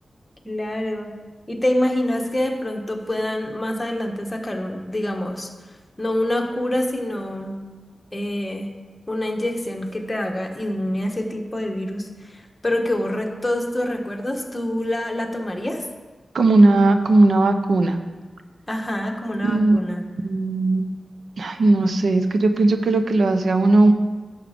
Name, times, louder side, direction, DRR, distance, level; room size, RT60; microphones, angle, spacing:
voice 1, 0.4-1.1 1.5-5.5 6.0-7.6 8.1-8.7 9.1-15.8 18.7-20.0, left 1 dB, 20° left, 2 dB, 1.4 m, -26 dB
voice 2, 16.3-18.0 19.4-19.8 20.2-20.8 21.4-23.9, right 2 dB, 85° right, 8 dB, 0.7 m, -17 dB
11.0 x 7.3 x 5.2 m, 1.3 s
wide cardioid pair, 85°, 0 cm